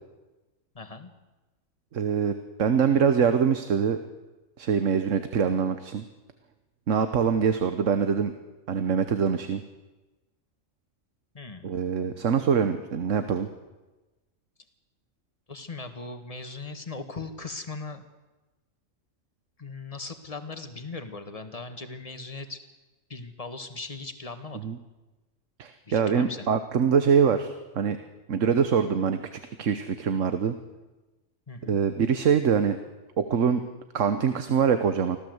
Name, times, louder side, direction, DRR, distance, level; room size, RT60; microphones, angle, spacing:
voice 1, 0.7-1.1 11.3-11.7 15.5-18.0 19.6-22.6 23.1-24.7 25.9-26.5 31.5-31.8, left 3 dB, 30° left, 8 dB, 1.7 m, -39 dB
voice 2, 1.9-2.3 2.6-4.0 4.6-6.0 6.9-8.3 8.7-9.6 11.6-13.5 24.6-24.8 25.6-28.0 28.3-30.5 31.6-32.8 33.2-33.6 33.9-35.2, right 7 dB, 75° right, 9 dB, 1.4 m, -24 dB
25.5 x 16.0 x 8.0 m, 1.1 s
omnidirectional pair, 1.3 m